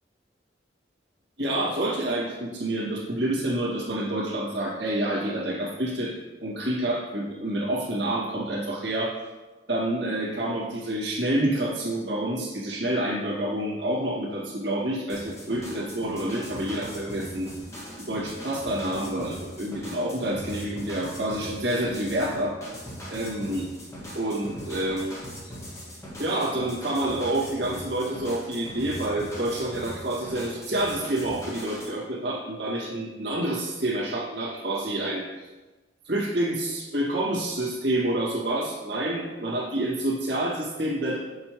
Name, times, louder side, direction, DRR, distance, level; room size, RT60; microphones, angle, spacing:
voice 1, 1.4-6.1 6.4-9.1 9.7-17.5 18.1-22.6 23.1-23.7 24.1-25.2 26.2-35.2 36.0-41.2, right 1 dB, 75° right, -5 dB, 2.0 m, -28 dB
sound 1, 15.1-31.9, equal, 15° left, 1.5 m, -40 dB
6.7 x 6.6 x 3.1 m, 1.2 s
head